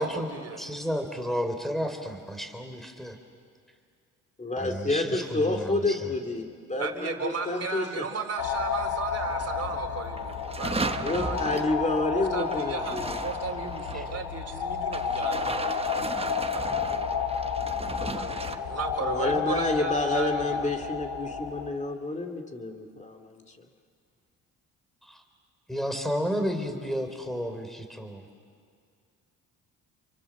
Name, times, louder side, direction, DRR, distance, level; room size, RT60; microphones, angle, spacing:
voice 1, 0.0-0.6 6.8-11.5 12.1-17.1 18.0-20.9, right 5 dB, 45° right, 4 dB, 3.8 m, -35 dB
voice 2, 0.6-3.2 4.6-6.0 13.9-14.0 25.1-25.2 25.7-28.2, equal, ahead, 6 dB, 4.0 m, -32 dB
voice 3, 4.4-8.0 10.8-13.2 19.0-23.4, left 2 dB, 20° left, 5 dB, 2.7 m, -29 dB
sound 1, 8.4-21.7, left 6 dB, 80° left, 2.4 m, -31 dB
sound 2, 9.3-9.8 10.1-14.1 14.9-18.6, right 3 dB, 15° right, 1.2 m, -36 dB
29.5 x 24.0 x 7.4 m, 2.2 s
supercardioid pair, 80°, 35 cm